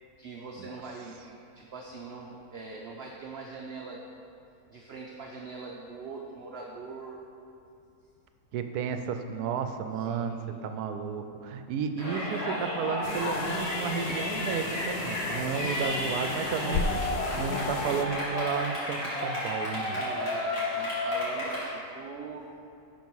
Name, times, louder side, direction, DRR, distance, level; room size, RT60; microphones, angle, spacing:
voice 1, 0.2-4.0 4.7-7.2 9.9-10.7 19.8-22.4, right 4 dB, 60° right, 0 dB, 0.7 m, -42 dB
voice 2, 8.5-20.0, right 6 dB, 80° right, 8 dB, 1.1 m, -33 dB
Yell, 12.0-21.7, left 1 dB, 25° left, 2.2 m, -32 dB
sound 1, 13.0-18.1, left 4 dB, 85° left, 1.1 m, -35 dB
11.0 x 4.6 x 4.6 m, 2.5 s
omnidirectional pair, 1.6 m